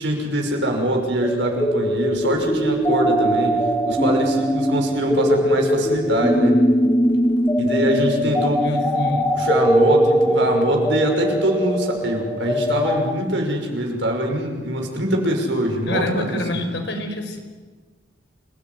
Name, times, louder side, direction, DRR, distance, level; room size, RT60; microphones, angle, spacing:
voice 1, 0.0-6.6 7.6-8.7 9.3-16.6, right 1 dB, 70° right, 2 dB, 6.0 m, -23 dB
sound 1, 1.2-13.1, equal, 10° left, 2.0 m, -20 dB
voice 2, 8.6-9.3 15.9-17.4, left 1 dB, 65° left, 5 dB, 5.1 m, -26 dB
29.0 x 20.0 x 9.6 m, 1.4 s
head